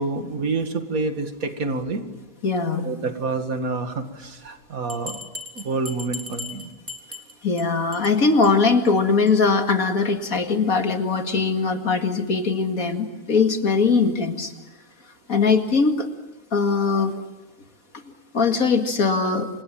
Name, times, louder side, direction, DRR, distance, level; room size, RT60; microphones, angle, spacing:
voice 1, 0.0-2.0 2.8-5.2 5.6-6.7, right 3 dB, 60° right, 7 dB, 2.6 m, -27 dB
voice 2, 2.4-2.9 7.4-14.5 15.3-16.1 16.5-17.1 18.3-19.5, left 4 dB, 60° left, 6 dB, 2.6 m, -21 dB
Bell, 4.9-7.6 7.9-8.1 8.4-8.5 8.8-8.9 9.3-9.4, left 2 dB, 10° right, 2.9 m, -37 dB
30.0 x 26.5 x 7.6 m, 1.0 s
omnidirectional pair, 1.6 m